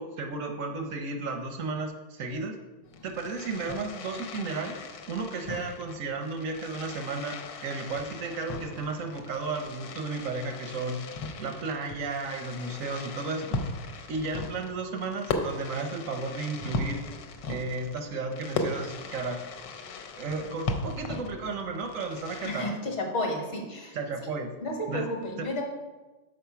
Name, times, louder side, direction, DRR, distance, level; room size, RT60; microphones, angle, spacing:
voice 1, 0.0-2.6 3.0-4.8 5.1-7.4 7.6-11.0 11.4-13.6 14.1-17.0 17.5-19.4 20.2-22.7 23.9-24.5 24.9-25.1 25.4-25.5, right 3 dB, 60° right, 5 dB, 0.8 m, -33 dB
Fireworks, 2.8-22.7, left 3 dB, 70° left, 1.4 m, -38 dB
voice 2, 22.4-24.0 24.6-25.6, left 1 dB, 40° left, 2 dB, 1.4 m, -32 dB
6.5 x 5.1 x 5.7 m, 1.2 s
omnidirectional pair, 2.1 m